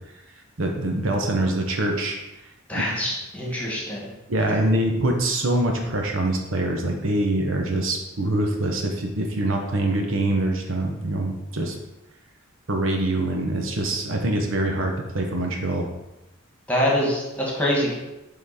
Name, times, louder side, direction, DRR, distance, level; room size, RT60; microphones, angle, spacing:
voice 1, 0.6-2.2 2.7-2.8 4.3-11.7 12.7-15.9, right 1 dB, 65° right, 2 dB, 1.0 m, -24 dB
voice 2, 2.7-4.1 16.7-17.9, equal, 5° left, -4 dB, 1.8 m, -24 dB
8.2 x 3.9 x 4.2 m, 0.99 s
head